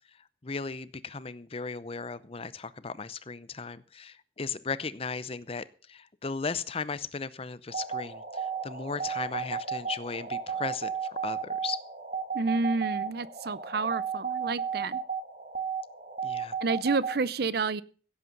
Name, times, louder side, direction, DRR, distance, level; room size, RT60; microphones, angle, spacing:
voice 1, 0.4-11.8 16.2-16.5, left 5 dB, 35° left, 16 dB, 0.6 m, -36 dB
sound 1, 7.7-17.2, right 6 dB, 45° right, 2.0 m, -34 dB
voice 2, 12.3-15.0 16.6-17.8, right 4 dB, 60° right, 19 dB, 0.6 m, -29 dB
16.0 x 8.5 x 5.3 m, 0.40 s
head